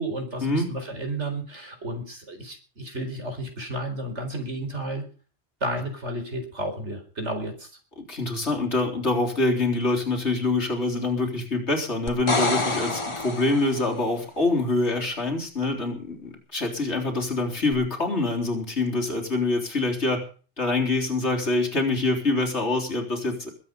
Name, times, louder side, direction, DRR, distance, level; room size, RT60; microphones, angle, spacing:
voice 1, 0.0-5.1 5.6-7.7, right 1 dB, 85° right, 5 dB, 4.7 m, -32 dB
voice 2, 8.0-20.2 20.6-23.5, left 2 dB, 75° left, 0 dB, 4.0 m, -25 dB
sound 1, 12.1-14.0 17.7-17.8, left 2 dB, 25° left, 1.6 m, -27 dB
21.0 x 8.8 x 5.4 m, 0.39 s
omnidirectional pair, 1.2 m